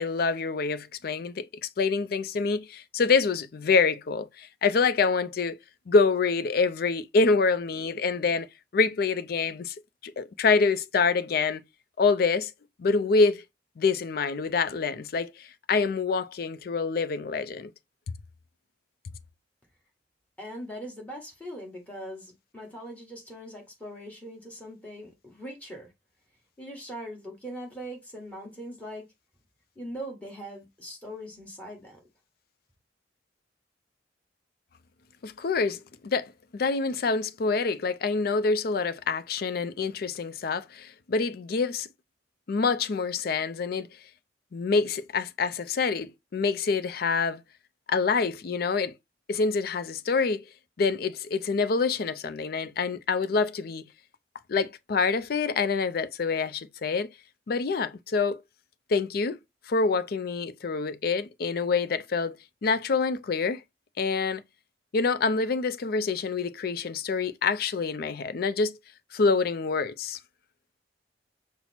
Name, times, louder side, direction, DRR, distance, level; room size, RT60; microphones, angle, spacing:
voice 1, 0.0-1.5 1.8-5.6 5.9-9.8 10.0-11.6 12.0-12.5 12.8-13.4 13.8-17.7 35.2-41.9 42.5-43.9 44.5-47.4 47.9-48.9 49.3-50.4 50.8-53.9 54.5-57.1 57.5-58.4 58.9-59.4 59.7-62.4 62.6-63.6 64.0-64.4 64.9-68.8 69.1-70.2, left 4 dB, 55° left, 0.4 m, -26 dB
voice 2, 20.4-25.9 26.6-29.0 29.7-32.0, equal, 10° left, 1.5 m, -41 dB
5.6 x 2.0 x 4.3 m
head